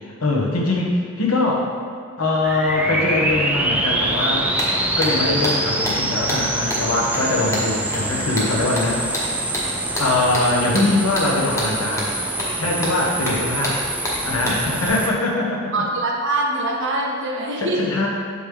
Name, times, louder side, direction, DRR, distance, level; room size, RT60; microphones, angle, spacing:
voice 1, 0.0-1.7 2.2-4.4 5.0-9.4 10.0-12.1 12.6-13.8 14.2-15.7 17.6-18.1, left 2 dB, 75° left, -2 dB, 1.2 m, -22 dB
sound 1, 2.4-15.1, right 1 dB, 5° right, 0.3 m, -25 dB
sound 2, 4.2-4.3 4.6-14.9, equal, 15° left, 1.0 m, -29 dB
voice 2, 15.7-17.9, right 2 dB, 55° right, -1 dB, 1.0 m, -23 dB
6.7 x 5.3 x 3.4 m, 2.2 s
head